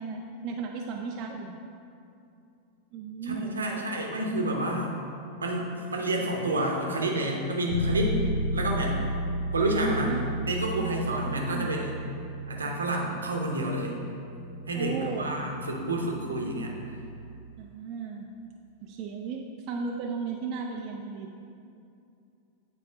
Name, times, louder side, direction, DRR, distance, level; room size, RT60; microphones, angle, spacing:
voice 1, 0.0-1.6 2.9-3.9 9.8-10.3 11.4-11.7 14.7-15.3 17.6-18.3 18.8-21.3, right 5 dB, 40° right, 1 dB, 0.4 m, -35 dB
voice 2, 3.2-4.9 5.4-8.2 8.5-9.0 9.5-10.1 10.5-12.0 12.5-14.0 14.7-16.7, right 1 dB, 75° right, 0 dB, 0.9 m, -29 dB
Bass guitar, 7.7-17.5, right 1 dB, 65° left, 0.5 m, -34 dB
8.5 x 4.0 x 3.8 m, 2.6 s
figure-of-eight pair, 90°, 0 cm